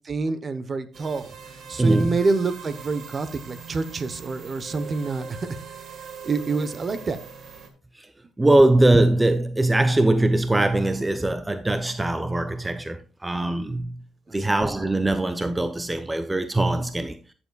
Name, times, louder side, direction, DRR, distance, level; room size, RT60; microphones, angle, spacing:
voice 1, 0.0-1.3 1.7-5.5 6.2-7.2 14.3-14.5, right 3 dB, 40° right, 1.0 m, -27 dB
sound 1, 0.9-7.7, right 6 dB, 65° right, 1.8 m, -41 dB
voice 2, 1.8-2.2 8.4-14.0 14.3-17.2, right 2 dB, 15° right, 0.6 m, -21 dB
13.0 x 7.2 x 2.4 m
cardioid pair, 90°, 0 cm